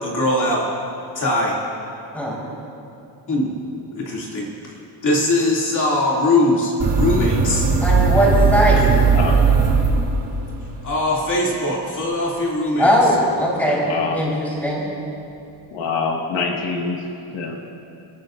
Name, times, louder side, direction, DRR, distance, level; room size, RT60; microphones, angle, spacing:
voice 1, 0.0-0.7 1.1-1.6 3.3-3.5 3.9-4.5 5.0-7.7 10.8-12.9, left 1 dB, 45° left, -4 dB, 2.6 m, -21 dB
sound 1, 6.8-10.5, right 4 dB, 35° right, 1.7 m, -17 dB
voice 2, 7.8-8.8 12.8-13.8 14.1-14.8, equal, 5° left, -5 dB, 4.3 m, -19 dB
voice 3, 13.8-14.2 15.7-17.0 17.3-17.6, left 5 dB, 80° left, 0 dB, 1.8 m, -25 dB
30.0 x 14.0 x 2.6 m, 2.7 s
cardioid pair, 160°, 43 cm